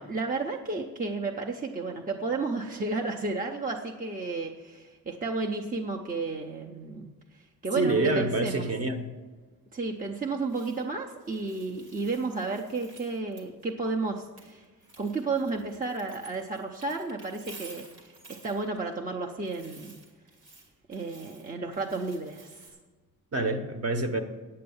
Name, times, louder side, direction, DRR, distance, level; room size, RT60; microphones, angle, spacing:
voice 1, 0.0-7.1 7.6-8.7 9.7-14.6 15.0-19.9 20.9-22.7, right 3 dB, 25° right, 1 dB, 0.6 m, -32 dB
voice 2, 7.8-9.1 23.3-24.2, right 2 dB, 40° right, 7 dB, 1.0 m, -27 dB
sound 1, 10.2-10.9 11.2-13.6 14.1-18.9 19.4-22.7, right 3 dB, 80° right, 2.2 m, -52 dB
8.6 x 8.6 x 7.0 m, 1.3 s
wide cardioid pair, 145°, 37 cm